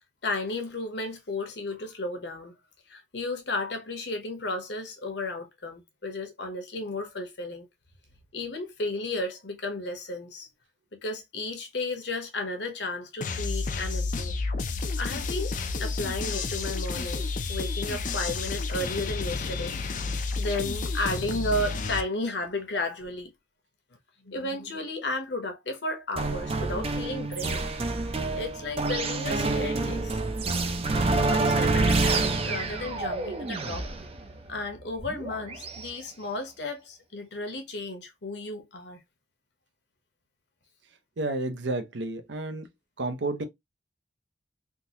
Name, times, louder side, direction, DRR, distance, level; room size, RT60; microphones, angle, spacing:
voice 1, 0.2-2.5 2.9-7.7 8.3-10.5 10.9-14.3 15.0-15.5 15.8-19.7 20.0-23.3 24.2-27.7 28.0-30.2 31.2-33.9 34.5-39.0, left 2 dB, 65° left, 1.0 m, -33 dB
sound 1, 13.2-22.0, left 3 dB, 45° left, 0.4 m, -31 dB
sound 2, 26.2-35.9, right 3 dB, 30° right, 0.5 m, -28 dB
voice 2, 41.2-42.7 43.0-43.5, right 2 dB, 75° right, 0.7 m, -31 dB
3.7 x 2.6 x 2.8 m
head